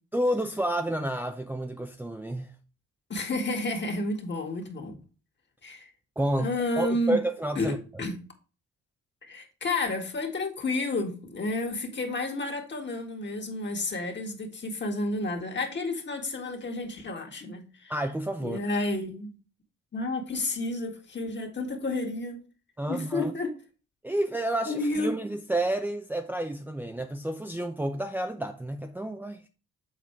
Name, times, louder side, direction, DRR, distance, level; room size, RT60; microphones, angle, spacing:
voice 1, 0.1-2.6 6.2-6.5 6.8-7.8 17.9-18.6 22.8-23.3 24.0-29.5, right 1 dB, 5° right, 0.6 m, -30 dB
voice 2, 3.1-5.0 5.6-5.9 6.4-7.2 7.6-8.2 9.2-17.9 18.4-19.3 19.9-22.4 22.9-23.5 24.7-25.1, left 2 dB, 35° left, 1.9 m, -31 dB
7.6 x 4.3 x 4.6 m
cardioid pair, 90°, 30 cm